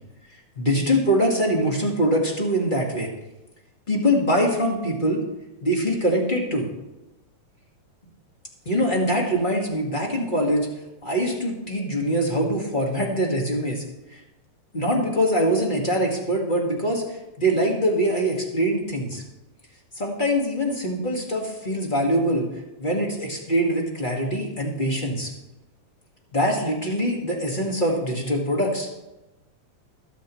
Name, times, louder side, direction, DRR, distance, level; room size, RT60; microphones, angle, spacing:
voice 1, 0.6-3.1 3.9-5.2 5.6-6.7 8.6-10.7 11.0-13.8 14.1-14.2 14.7-17.0 17.4-19.2 20.0-22.5 22.8-25.3 26.3-28.9, equal, 25° left, -1 dB, 1.2 m, -23 dB
22.0 x 7.3 x 3.1 m, 0.98 s
omnidirectional pair, 3.4 m